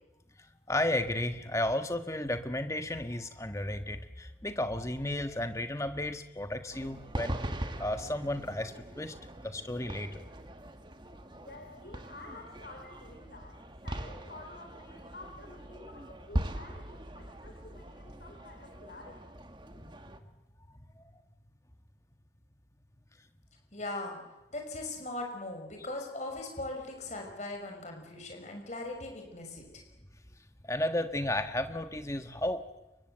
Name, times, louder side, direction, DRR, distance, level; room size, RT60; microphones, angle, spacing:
voice 1, 0.7-7.4 7.8-9.1 9.4-10.2 19.8-20.0 20.9-21.0 30.6-32.6, left 1 dB, 15° left, 8 dB, 1.4 m, -33 dB
sound 1, 6.7-20.2, right 1 dB, 25° right, 1.6 m, -41 dB
voice 2, 11.4-19.3, left 2 dB, 55° left, 2 dB, 4.6 m, -50 dB
voice 3, 23.7-24.2 24.5-29.8, left 2 dB, 40° left, 3 dB, 6.1 m, -39 dB
29.0 x 24.0 x 8.0 m, 1.0 s
head